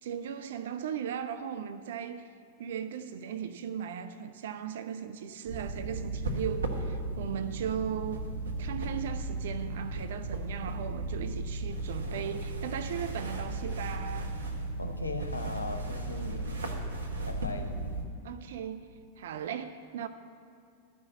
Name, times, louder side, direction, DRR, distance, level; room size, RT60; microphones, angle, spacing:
voice 1, 0.0-2.3 2.6-8.3 8.6-14.4 18.2-20.1, right 8 dB, 60° right, 0.4 m, -37 dB
sound 1, 5.5-18.0, right 2 dB, 75° right, 1.0 m, -35 dB
voice 2, 14.8-16.7 17.3-17.9, left 3 dB, 80° left, 0.9 m, -39 dB
11.0 x 5.9 x 8.2 m
figure-of-eight pair, 90°, 0 cm